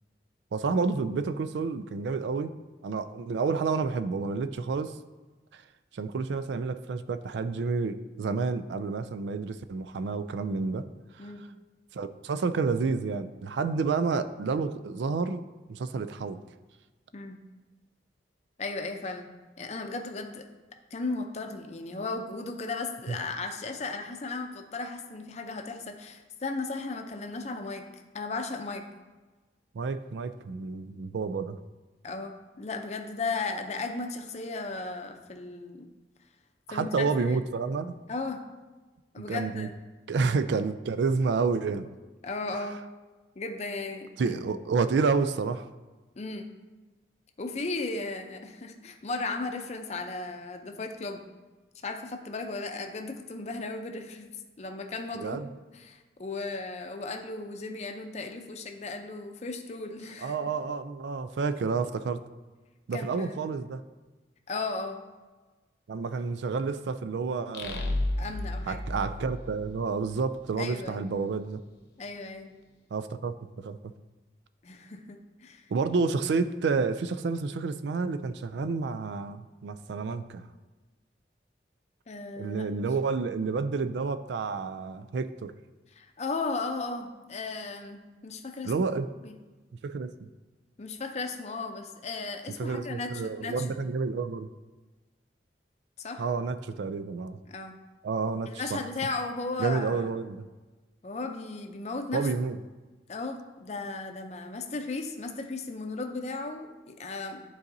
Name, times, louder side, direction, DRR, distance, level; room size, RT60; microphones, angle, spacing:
voice 1, 0.5-2.5 2.8-4.9 5.5-5.6 5.9-10.8 11.2-11.3 11.9-15.4 15.7-16.4 23.1-23.2 29.7-31.6 36.7-38.0 39.2-39.7 40.1-41.9 42.5-42.7 44.2-45.7 55.2-55.5 60.2-62.2 62.9-63.8 65.9-68.0 68.7-71.6 72.9-73.9 75.7-80.5 82.4-85.5 88.6-89.1 89.8-90.3 92.6-94.5 96.2-97.4 98.0-98.8 99.6-100.5 102.1-102.6, right 4 dB, 75° right, 11 dB, 0.4 m, -30 dB
voice 2, 18.6-19.3 19.6-20.5 20.9-27.8 28.1-28.8 32.0-35.9 36.7-37.4 38.1-38.4 39.1-39.8 42.2-42.8 43.4-44.4 46.2-46.5 47.4-51.2 51.8-55.4 55.7-60.3 62.9-63.4 64.5-65.0 68.2-68.8 70.6-71.0 72.0-72.5 74.6-75.7 82.1-82.7 86.0-88.7 89.2-89.4 90.8-93.8 96.0-96.2 97.5-97.8 98.5-100.1 101.0-102.3 103.1-107.4, left 3 dB, 40° left, 5 dB, 0.5 m, -36 dB
sound 1, 67.5-70.2, left 1 dB, 65° left, 0.8 m, -32 dB
11.5 x 4.0 x 2.7 m, 1.3 s
head